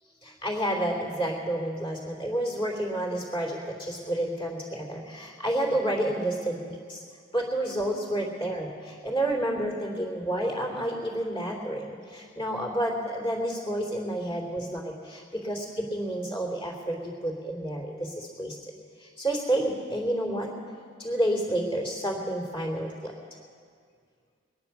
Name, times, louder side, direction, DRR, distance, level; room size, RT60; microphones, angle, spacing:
voice 1, 0.2-7.0 7.3-18.7 19.0-20.5 21.0-23.1, right 1 dB, 25° left, 1 dB, 3.0 m, -30 dB
22.5 x 10.5 x 6.0 m, 2.1 s
head